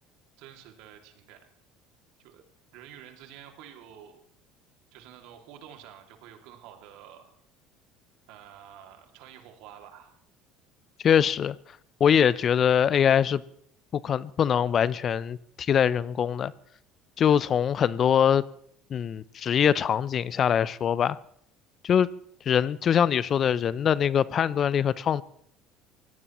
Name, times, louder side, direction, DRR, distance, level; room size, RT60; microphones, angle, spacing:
voice 1, 0.4-1.5 2.2-2.4 2.7-4.2 4.9-7.4 8.3-10.2, right 10 dB, 70° right, 2.4 m, -49 dB
voice 2, 11.0-11.6 12.0-13.4 13.9-16.5 17.2-18.4 18.9-21.2 21.8-22.1 22.5-25.2, left 8 dB, 45° left, 0.6 m, -23 dB
24.5 x 17.0 x 3.1 m
hypercardioid pair, 80°, 0 cm